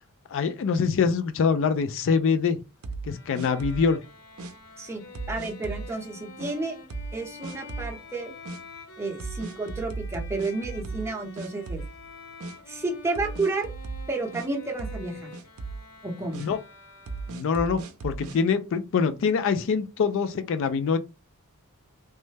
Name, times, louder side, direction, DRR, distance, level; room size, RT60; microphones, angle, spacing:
voice 1, 0.3-2.6 3.0-4.0 16.4-16.6 17.3-21.0, left 5 dB, 60° left, 0.3 m, -24 dB
sound 1, 2.8-3.9 4.4-4.5 5.1-5.9 6.4-6.5 6.9-7.2 7.4-8.0 8.4-8.6 9.2-11.1 11.4-12.1 12.4-12.5 13.1-14.5 14.8-15.1 15.3-15.8 16.3-16.5 17.1-18.4, right 3 dB, 70° right, 0.5 m, -36 dB
Bowed string instrument, 3.1-17.7, left 3 dB, 85° left, 0.9 m, -47 dB
voice 2, 4.8-6.8 7.1-8.3 9.0-11.8 12.7-13.7 14.1-15.3 16.0-16.4, right 3 dB, 10° right, 0.7 m, -31 dB
3.2 x 2.1 x 3.2 m
head